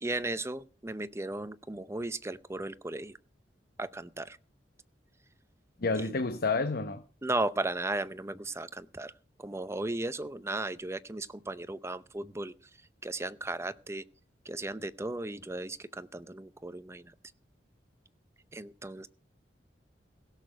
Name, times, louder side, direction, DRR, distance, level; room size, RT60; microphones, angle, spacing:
voice 1, 0.0-3.1 3.8-4.4 6.0-6.1 7.2-9.1 9.4-12.5 13.0-14.0 14.5-17.1 18.5-19.1, right 2 dB, 15° right, 0.6 m, -35 dB
voice 2, 5.8-7.0, left 3 dB, 60° left, 0.9 m, -29 dB
16.5 x 6.7 x 6.3 m
head